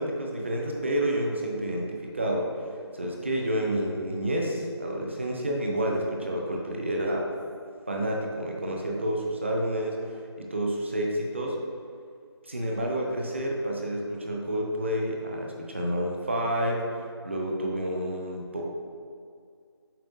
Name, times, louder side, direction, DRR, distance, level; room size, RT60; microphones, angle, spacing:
voice 1, 0.0-2.5 2.9-7.3 7.9-11.6 12.4-18.6, right 1 dB, 25° right, 0 dB, 0.6 m, -29 dB
7.5 x 5.0 x 2.6 m, 2.3 s
figure-of-eight pair, 170°, 14 cm